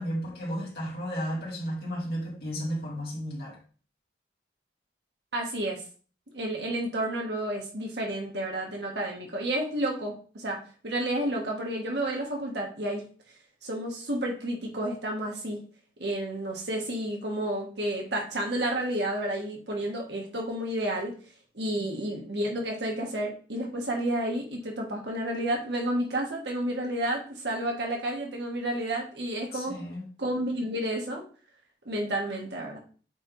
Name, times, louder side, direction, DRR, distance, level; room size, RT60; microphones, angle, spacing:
voice 1, 0.0-3.6 21.7-21.8 29.5-30.0, equal, 55° left, -4 dB, 2.6 m, -33 dB
voice 2, 5.3-5.8 6.3-13.0 13.6-15.6 16.0-21.1 21.5-29.8 30.2-31.2 31.8-32.8, right 1 dB, 75° right, 0 dB, 1.5 m, -31 dB
8.3 x 3.3 x 3.9 m, 0.40 s
head